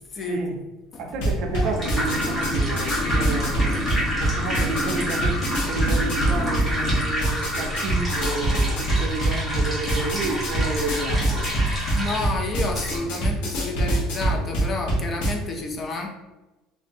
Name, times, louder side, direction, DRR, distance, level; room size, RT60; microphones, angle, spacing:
voice 1, 0.2-0.6 1.0-11.5, right 3 dB, 50° right, 3 dB, 0.4 m, -31 dB
sound 1, 1.1-15.3, right 1 dB, 85° left, 0.7 m, -25 dB
sound 2, 1.3-13.0, equal, 5° left, 0.7 m, -29 dB
sound 3, 1.7-7.1 7.4-7.5, equal, 45° left, 1.1 m, -32 dB
voice 2, 12.0-16.1, left 2 dB, 25° left, 2 dB, 0.3 m, -30 dB
2.5 x 2.1 x 2.6 m, 1.1 s
cardioid pair, 165°, 0 cm